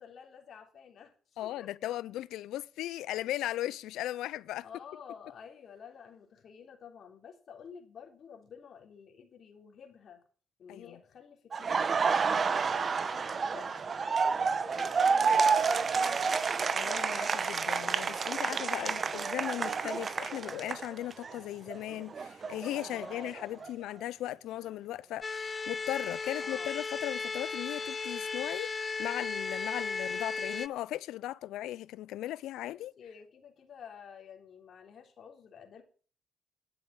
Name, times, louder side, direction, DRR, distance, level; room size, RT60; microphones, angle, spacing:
voice 1, 0.0-1.9 4.6-10.2 10.6-11.9 12.3-16.4 18.8-19.2 20.3-20.5 22.9-23.7 26.4-26.7 29.7-29.9 32.7-35.8, left 7 dB, 60° left, 3.4 m, -51 dB
voice 2, 1.4-4.7 10.7-11.0 16.7-32.9, left 14 dB, 90° left, 0.5 m, -37 dB
Laughter, 11.5-21.3 21.7-23.7, right 5 dB, 40° right, 1.0 m, -30 dB
sound 1, 25.2-30.7, left 4 dB, 30° left, 0.5 m, -35 dB
11.5 x 7.9 x 8.5 m
cardioid pair, 90°, 0 cm